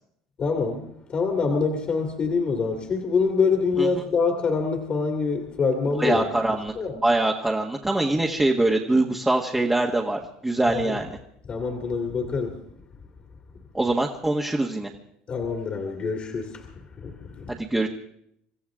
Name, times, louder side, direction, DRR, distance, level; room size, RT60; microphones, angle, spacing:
voice 1, 0.4-6.2 6.8-7.0 10.7-11.0 11.5-12.6 15.3-16.7 17.0-17.5, left 4 dB, 40° left, 2 dB, 2.3 m, -25 dB
voice 2, 6.0-11.2 13.7-14.9 17.5-17.9, right 2 dB, 10° right, -1 dB, 1.6 m, -24 dB
26.5 x 14.5 x 3.7 m, 0.72 s
supercardioid pair, 95°, 3 cm